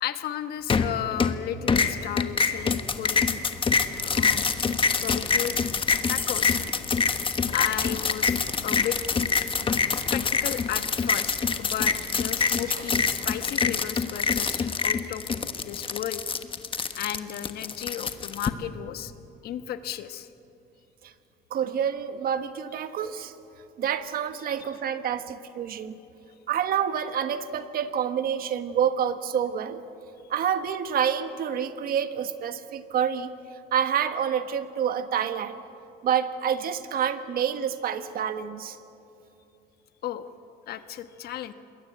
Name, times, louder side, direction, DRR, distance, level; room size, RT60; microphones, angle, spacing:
voice 1, 0.0-3.4 4.0-4.5 5.0-5.5 6.1-6.6 7.5-9.0 9.9-15.2 15.6-16.2 16.9-19.1 19.4-20.3 24.5-24.6 40.0-40.3 40.7-41.5, left 11 dB, 70° left, 10 dB, 1.2 m, -34 dB
sound 1, 0.7-1.4 1.7-18.5, left 5 dB, 30° left, 1.3 m, -25 dB
voice 2, 21.5-23.3 23.8-25.9 26.5-29.8 30.3-33.3 33.7-35.6 36.0-38.8, right 8 dB, 60° right, 10 dB, 1.4 m, -28 dB
27.0 x 21.5 x 8.1 m, 2.8 s
cardioid pair, 110°, 17 cm